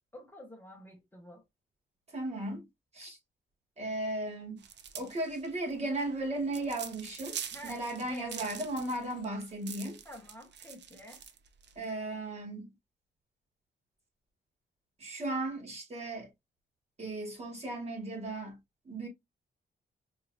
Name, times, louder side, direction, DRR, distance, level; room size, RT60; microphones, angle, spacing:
voice 1, 0.1-1.4 7.5-8.4 10.0-11.2, left 1 dB, 10° left, 1.1 m, -49 dB
voice 2, 2.1-2.7 2.9-3.2 3.8-4.6 4.9-10.0 11.8-12.7 15.0-16.3 17.0-18.6 18.8-19.1, right 2 dB, 35° right, 2.0 m, -36 dB
sound 1, 4.6-11.8, right 8 dB, 65° right, 0.6 m, -45 dB
4.4 x 2.8 x 2.4 m
wide cardioid pair, 125°, 19 cm